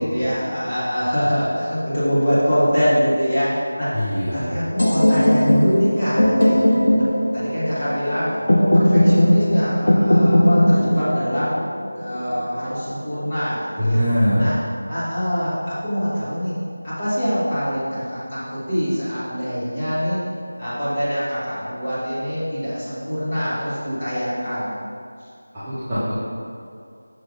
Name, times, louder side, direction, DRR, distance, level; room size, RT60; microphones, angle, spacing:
voice 1, 0.0-6.6 7.3-11.5 12.0-14.0 14.4-14.5 14.9-16.5 16.8-20.2 20.6-24.8, equal, 15° left, -12 dB, 1.2 m, -24 dB
voice 2, 3.9-4.6 13.8-14.5 25.5-26.2, equal, 5° right, -21 dB, 0.8 m, -22 dB
sound 1, 4.8-12.7, left 1 dB, 75° left, 1.1 m, -18 dB
6.3 x 3.2 x 5.1 m, 2.4 s
figure-of-eight pair, 180°, 0 cm